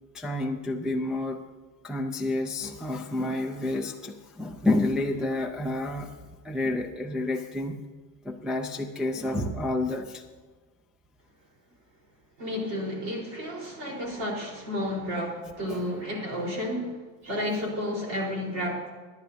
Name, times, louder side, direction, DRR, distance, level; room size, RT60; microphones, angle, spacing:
voice 1, 0.1-1.4 1.8-6.1 6.4-7.8 8.2-10.2 15.7-15.9, left 2 dB, ahead, 0 dB, 0.4 m, -29 dB
voice 2, 12.4-17.0 17.2-18.9, left 1 dB, 40° right, -1 dB, 4.3 m, -31 dB
24.0 x 10.5 x 2.8 m, 1.4 s
cardioid pair, 145°, 42 cm